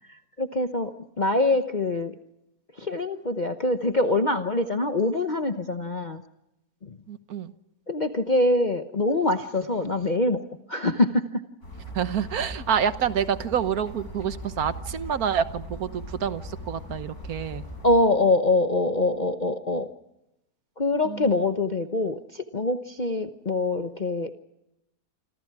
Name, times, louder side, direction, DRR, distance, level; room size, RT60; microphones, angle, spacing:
voice 1, 0.1-2.1 2.8-6.2 6.8-7.0 7.9-11.4 17.8-19.9 20.8-24.3, left 2 dB, 35° left, 6 dB, 0.9 m, -24 dB
voice 2, 7.1-7.5 11.9-17.6 21.0-21.4, right 8 dB, 65° right, 12 dB, 1.6 m, -28 dB
sound 1, 11.6-17.9, equal, 65° left, 7.1 m, -39 dB
28.0 x 26.5 x 4.8 m, 0.88 s
omnidirectional pair, 1.7 m